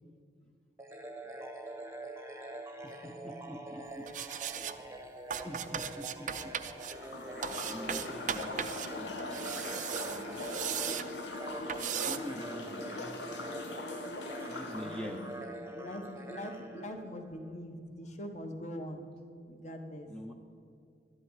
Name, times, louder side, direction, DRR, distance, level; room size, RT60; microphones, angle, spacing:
sound 1, 0.8-17.5, right 1 dB, 15° right, 0.9 m, -45 dB
voice 1, 2.8-4.9 5.4-6.5 7.3-9.7 10.0-10.4 11.9-13.5 14.5-15.2 20.1-20.3, equal, 5° left, 1 dB, 0.6 m, -46 dB
sound 2, 4.1-4.7 5.3-6.9 7.4-8.9 9.2-11.1 11.7-12.2, right 8 dB, 45° right, 0.5 m, -37 dB
sound 3, 6.8-15.4, left 2 dB, 85° left, 1.1 m, -42 dB
voice 2, 14.7-15.3 15.7-19.1 19.4-20.1, equal, 40° left, 5 dB, 1.2 m, -43 dB
12.5 x 11.0 x 4.8 m, 2.5 s
head